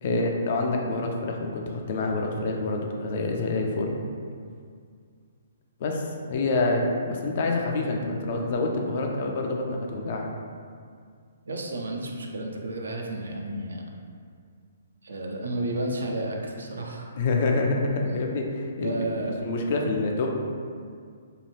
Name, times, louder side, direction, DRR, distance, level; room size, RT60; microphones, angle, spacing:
voice 1, 0.0-4.0 5.8-6.0 6.3-10.2 17.2-18.9 19.4-20.3, left 3 dB, 40° left, 1 dB, 0.3 m, -27 dB
voice 2, 11.5-14.0 15.0-17.1 18.1-18.3 18.8-19.5, right 2 dB, 65° right, 1 dB, 0.4 m, -32 dB
2.8 x 2.2 x 2.9 m, 2.1 s
figure-of-eight pair, 125°, 0 cm